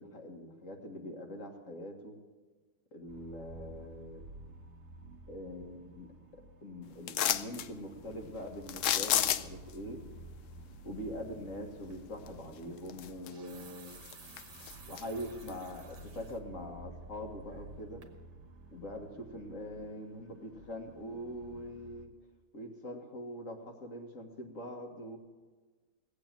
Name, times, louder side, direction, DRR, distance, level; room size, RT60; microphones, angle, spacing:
voice 1, 0.0-2.2 2.9-4.2 5.3-6.1 6.6-10.0 10.8-14.0 14.9-18.0 18.7-22.1 22.5-25.2, equal, 50° left, 3 dB, 2.1 m, -43 dB
sound 1, 3.1-22.1, right 2 dB, 45° right, 1.5 m, -52 dB
sound 2, 7.1-7.7 8.7-9.7 12.3-12.4 12.9-13.6 13.9-15.0 15.5-15.6, left 11 dB, 65° left, 0.8 m, -30 dB
sound 3, 11.9-12.1 13.1-16.4 16.9-17.0 17.5-17.8 18.0-18.2, right 6 dB, 75° right, 1.9 m, -55 dB
17.5 x 8.4 x 8.9 m, 1.3 s
omnidirectional pair, 1.8 m